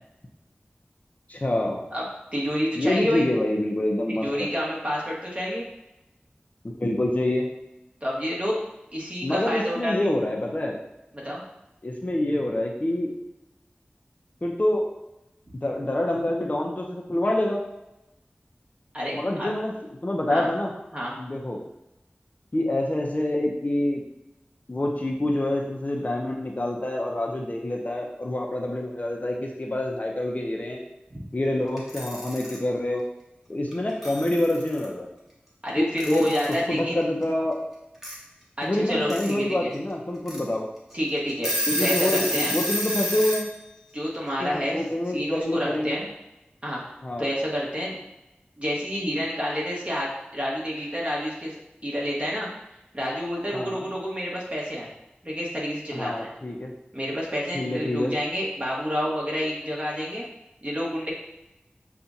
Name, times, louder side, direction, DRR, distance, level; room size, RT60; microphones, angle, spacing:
voice 1, 1.3-1.8 2.8-4.5 6.6-7.5 9.2-10.8 11.8-13.1 14.4-14.9 15.6-17.6 19.1-19.7 20.0-20.7 21.2-21.6 22.5-24.0 24.7-30.8 31.3-33.0 33.5-35.1 35.8-36.3 36.7-37.6 38.6-40.6 41.7-43.5 44.4-46.0 47.0-47.3 53.5-53.9 55.9-56.7 57.5-58.1, left 1 dB, 40° left, -1 dB, 0.7 m, -26 dB
voice 2, 2.3-3.2 4.1-5.6 8.0-8.6 8.9-10.1 11.1-11.4 18.9-19.5 20.3-20.5 20.9-21.1 31.1-31.2 35.6-37.0 38.6-39.7 40.9-41.5 41.8-42.6 43.9-44.8 45.1-46.1 46.6-46.8 47.2-48.0 48.6-51.5 51.8-52.5 52.9-54.9 55.2-56.3 56.9-60.2 60.6-61.1, equal, 30° right, -5 dB, 1.5 m, -29 dB
Alarm / Clock, 31.8-32.6 33.7-33.8 34.0-34.9 36.0-36.6 38.0-38.1 38.9-39.3 39.7-39.8 40.3-40.4 40.9-41.0 41.3-43.5, equal, 10° right, 1.3 m, -28 dB
6.9 x 2.4 x 2.7 m, 0.91 s
wide cardioid pair, 50°, 4 cm